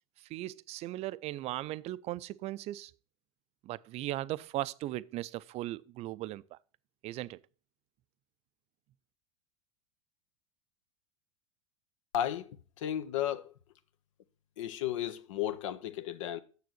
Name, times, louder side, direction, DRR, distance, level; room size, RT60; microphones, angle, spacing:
voice 1, 0.3-2.9 3.6-6.6 7.0-7.4, right 16 dB, 40° right, 0.4 m, -38 dB
voice 2, 12.1-13.5 14.6-16.4, left 11 dB, 70° left, 0.6 m, -34 dB
6.8 x 6.5 x 6.1 m
hypercardioid pair, 90°, 17 cm